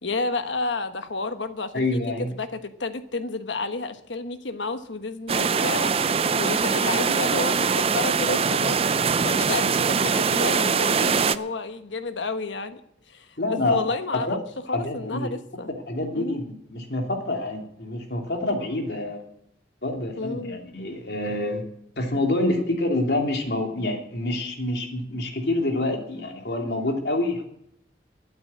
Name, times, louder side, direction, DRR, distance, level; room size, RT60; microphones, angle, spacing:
voice 1, 0.0-2.0 2.3-8.8 9.2-12.8 13.1-14.4 14.7-15.7 16.1-16.4 20.2-20.6 22.5-22.7, left 3 dB, 85° left, 9 dB, 1.3 m, -31 dB
voice 2, 1.7-2.3 13.4-13.8 14.3-14.4 14.7-15.3 15.9-19.2 19.8-21.6 22.0-27.4, left 2 dB, 65° left, 2 dB, 2.9 m, -27 dB
sound 1, 5.3-11.4, right 5 dB, 30° right, 0.4 m, -22 dB
12.5 x 8.9 x 8.6 m, 0.72 s
head